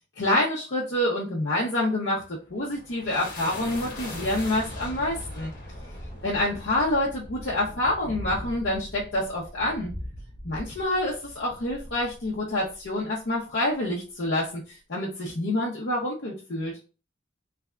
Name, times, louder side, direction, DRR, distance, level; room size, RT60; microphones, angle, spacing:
voice 1, 0.2-5.5 6.2-9.9 10.4-16.7, left 1 dB, 70° left, -5 dB, 0.8 m, -27 dB
sound 1, 2.2-13.0, left 1 dB, 45° left, 1.2 m, -40 dB
3.3 x 2.4 x 3.2 m, 0.34 s
head